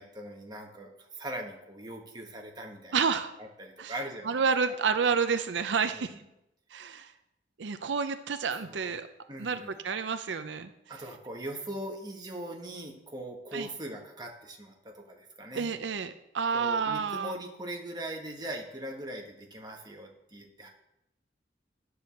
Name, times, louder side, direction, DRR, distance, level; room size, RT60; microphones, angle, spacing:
voice 1, 0.0-3.0 3.4-4.7 5.8-6.2 8.5-8.9 9.3-9.7 10.9-15.7 16.5-20.7, right 1 dB, 25° right, 1 dB, 1.4 m, -41 dB
voice 2, 2.9-3.3 3.8-3.9 4.3-6.1 6.7-7.1 7.6-9.1 9.4-10.7 13.5-13.7 15.5-17.3, right 5 dB, 90° right, 10 dB, 0.5 m, -29 dB
9.8 x 4.8 x 7.0 m, 0.84 s
head